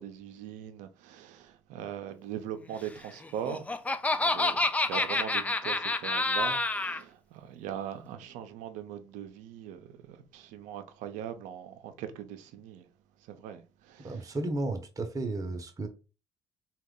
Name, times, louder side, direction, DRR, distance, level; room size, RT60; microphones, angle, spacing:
voice 1, 0.0-3.7 4.2-12.8 13.3-14.3, right 9 dB, 75° right, 0.5 m, -40 dB
Laughter, 3.2-7.0, left 2 dB, 10° left, 0.3 m, -28 dB
voice 2, 14.0-15.9, right 2 dB, 25° right, 0.8 m, -33 dB
2.9 x 2.3 x 3.6 m
supercardioid pair, 70°, 13 cm